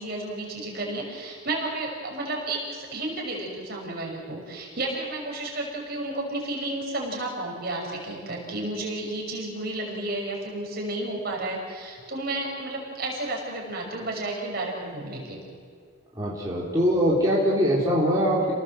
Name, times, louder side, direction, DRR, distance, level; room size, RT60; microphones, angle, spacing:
voice 1, 0.0-15.4, right 2 dB, 50° right, -1 dB, 6.1 m, -32 dB
voice 2, 16.2-18.5, equal, 15° right, -6 dB, 4.0 m, -22 dB
29.5 x 19.0 x 7.8 m, 2.2 s
head